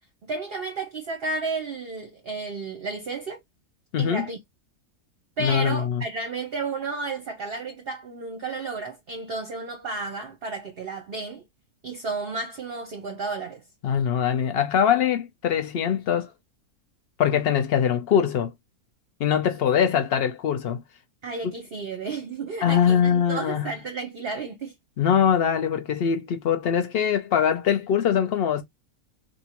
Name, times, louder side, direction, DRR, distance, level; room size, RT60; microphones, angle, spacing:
voice 1, 0.2-3.4 4.0-4.4 5.4-11.5 11.8-13.6 21.2-24.7, right 3 dB, 50° right, 0.8 m, -32 dB
voice 2, 3.9-4.3 5.4-6.0 13.8-16.3 17.2-18.5 19.2-20.8 22.6-23.7 25.0-28.6, left 8 dB, 80° left, 0.5 m, -22 dB
3.5 x 2.6 x 2.9 m
omnidirectional pair, 1.6 m